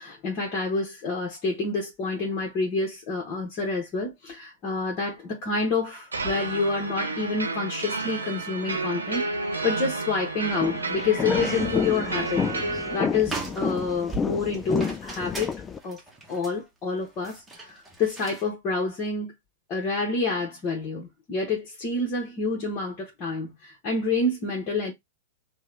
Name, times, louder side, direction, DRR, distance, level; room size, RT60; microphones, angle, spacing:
voice 1, 0.0-15.5 15.8-16.0 16.3-19.3 19.7-24.9, left 3 dB, 35° left, 1.2 m, -28 dB
sound 1, 6.1-13.0, right 3 dB, 90° right, 0.9 m, -31 dB
sound 2, 10.5-15.8, left 6 dB, 20° left, 0.3 m, -30 dB
sound 3, 11.9-12.4 12.7-12.8 13.2-18.5, right 3 dB, 10° right, 1.1 m, -40 dB
3.5 x 2.3 x 3.2 m
hypercardioid pair, 105°, 0 cm